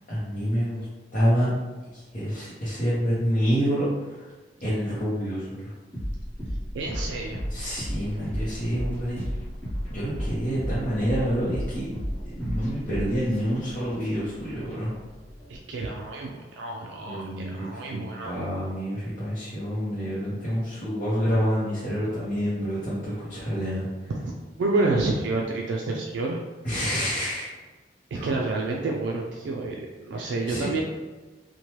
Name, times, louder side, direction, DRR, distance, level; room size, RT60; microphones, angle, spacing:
voice 1, 0.1-0.9 1.1-1.5 1.9-4.3 4.6-5.7 7.5-9.3 9.9-11.9 12.2-14.9 17.0-24.1 26.6-27.5 28.1-28.3 30.2-30.8, equal, 45° left, -10 dB, 0.7 m, -28 dB
sound 1, 5.9-15.6, equal, 10° left, 0.8 m, -33 dB
voice 2, 6.7-7.4 15.5-18.4 24.1-24.3 24.6-26.4 28.1-30.8, right 3 dB, 70° right, 0 dB, 0.3 m, -29 dB
3.0 x 2.2 x 2.9 m, 1.3 s
head